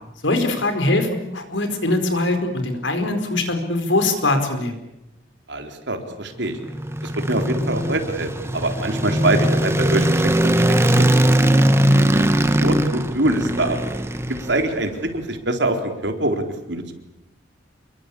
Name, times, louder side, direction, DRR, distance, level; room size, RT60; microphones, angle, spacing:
voice 1, 0.2-4.8, left 2 dB, 85° left, 7 dB, 4.7 m, -22 dB
voice 2, 5.5-6.6 7.0-10.1 10.4-11.0 11.4-11.5 12.1-12.2 12.6-13.8 14.5-16.4 16.7-16.9, right 1 dB, 70° right, 5 dB, 4.2 m, -24 dB
sound 1, 6.5-14.9, right 1 dB, 15° right, 1.3 m, -20 dB
28.5 x 22.5 x 8.6 m, 0.90 s
head